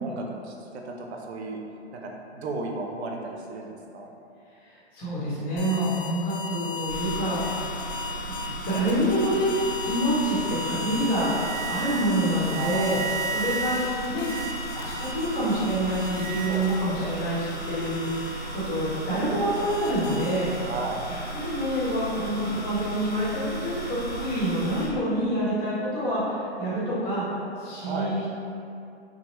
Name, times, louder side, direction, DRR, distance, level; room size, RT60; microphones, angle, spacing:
voice 1, 0.0-1.6 1.9-4.1 12.5-13.0 16.5-17.1 20.6-21.0 27.8-28.1, right 3 dB, 75° right, 1 dB, 0.6 m, -35 dB
voice 2, 4.7-7.6 8.2-13.0 13.3-14.3 14.7-20.7 21.1-27.2 27.6-28.3, equal, 30° left, -8 dB, 1.0 m, -27 dB
sound 1, 5.6-17.0 17.5-20.8, equal, 45° left, 0.5 m, -35 dB
sound 2, 6.9-24.9, right 2 dB, 10° right, 1.1 m, -36 dB
2.8 x 2.1 x 3.0 m, 2.6 s
hypercardioid pair, 130°, 33 cm